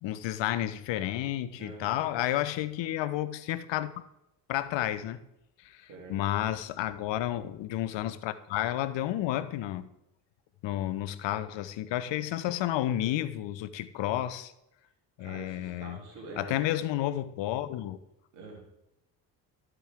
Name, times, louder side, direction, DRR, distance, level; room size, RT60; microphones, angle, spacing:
voice 1, 0.0-3.9 4.5-5.2 5.6-9.9 10.6-14.5 15.2-16.0 16.4-18.0, left 13 dB, 60° left, 0.9 m, -31 dB
voice 2, 1.6-2.1 5.9-6.2 15.2-16.7 18.3-18.6, right 3 dB, 80° right, 3.3 m, -45 dB
13.0 x 8.0 x 3.7 m
hypercardioid pair, 60°, 49 cm